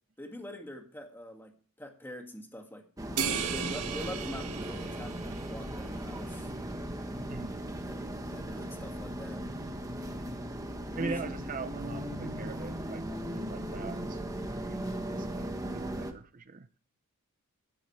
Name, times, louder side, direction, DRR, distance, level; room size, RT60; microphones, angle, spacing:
voice 1, 0.2-1.5 1.8-2.9 3.5-6.5 7.9-9.4 10.9-11.3, equal, 10° left, 2.1 m, -43 dB
sound 1, 3.0-16.1, right 1 dB, 15° right, 1.3 m, -37 dB
sound 2, 3.2-5.9, right 7 dB, 90° right, 1.6 m, -36 dB
voice 2, 7.3-7.6 10.9-16.7, right 4 dB, 35° right, 0.5 m, -42 dB
13.5 x 11.5 x 3.3 m
head